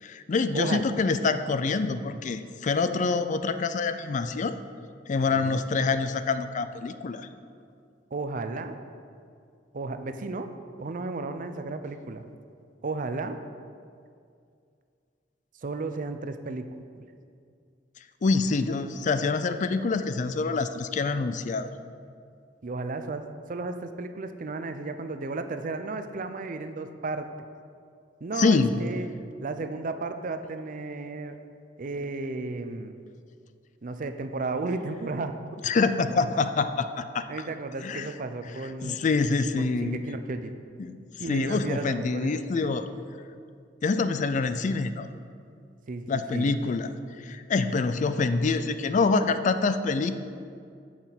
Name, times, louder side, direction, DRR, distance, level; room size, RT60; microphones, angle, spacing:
voice 1, 0.0-4.6 5.1-7.3 18.2-21.8 28.4-28.8 35.6-37.2 37.8-38.1 38.8-40.0 40.8-41.0 41.3-42.9 43.8-45.1 46.1-50.2, left 4 dB, 45° left, 11 dB, 0.4 m, -26 dB
voice 2, 5.3-5.6 8.1-8.8 9.7-10.5 10.8-12.3 12.8-13.4 15.6-16.7 17.0-17.1 22.6-27.3 28.2-29.1 29.4-31.4 31.8-32.9 33.8-35.3 37.3-39.0 39.6-40.6 41.2-42.4 45.9-46.5, right 3 dB, 50° right, 8 dB, 0.5 m, -33 dB
6.6 x 6.0 x 7.2 m, 2.3 s
head